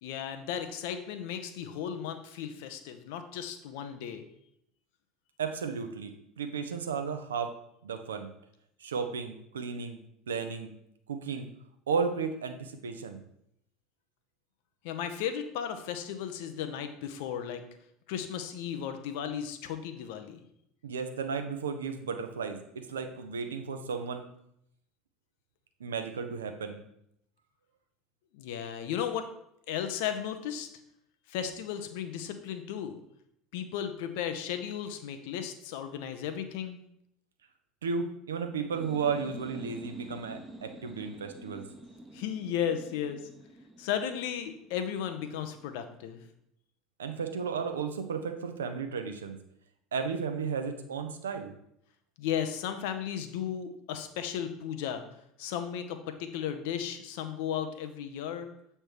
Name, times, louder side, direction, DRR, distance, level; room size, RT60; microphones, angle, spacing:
voice 1, 0.0-4.3 14.8-17.6 18.1-20.4 28.3-29.3 29.7-30.7 31.3-33.0 33.5-36.8 42.1-43.3 43.8-46.2 52.2-55.0 55.4-58.5, left 9 dB, 60° left, 8 dB, 0.6 m, -35 dB
voice 2, 5.4-7.5 7.8-8.3 8.8-10.0 10.3-10.7 11.1-11.5 11.9-13.2 20.8-24.2 25.8-26.8 37.8-41.6 47.0-49.4 49.9-51.5, right 5 dB, 70° right, 7 dB, 0.6 m, -34 dB
sound 1, 38.6-46.1, right 1 dB, 10° right, 0.8 m, -48 dB
7.5 x 3.3 x 4.6 m, 0.75 s
figure-of-eight pair, 70°, 0 cm